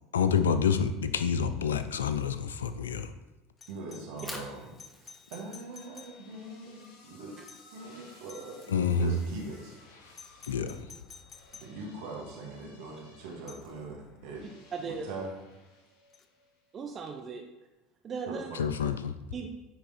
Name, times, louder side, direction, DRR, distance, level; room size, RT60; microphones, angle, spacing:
voice 1, 0.1-3.1 8.7-9.2 10.4-10.9 18.5-19.1, left 6 dB, 90° left, 10 dB, 0.4 m, -28 dB
Doorbell, 3.6-6.6 7.5-7.8 8.3-8.8 10.1-11.8 13.5-13.7 16.1-16.3, left 6 dB, 30° left, 0.6 m, -52 dB
voice 2, 3.7-4.7 5.0-7.3 7.7-9.8 11.6-13.9 14.2-14.4 14.8-15.3 18.3-18.6, right 3 dB, 70° right, -1 dB, 1.7 m, -42 dB
Fire, 4.1-10.2, left 1 dB, 10° left, 1.3 m, -50 dB
sound 1, 5.4-16.7, left 2 dB, 70° left, 1.8 m, -57 dB
voice 3, 14.7-15.0 16.7-17.4 18.0-18.5 19.3-19.5, right 5 dB, 35° right, 3 dB, 0.7 m, -37 dB
9.3 x 3.5 x 4.2 m, 1.1 s
hypercardioid pair, 85°, 0 cm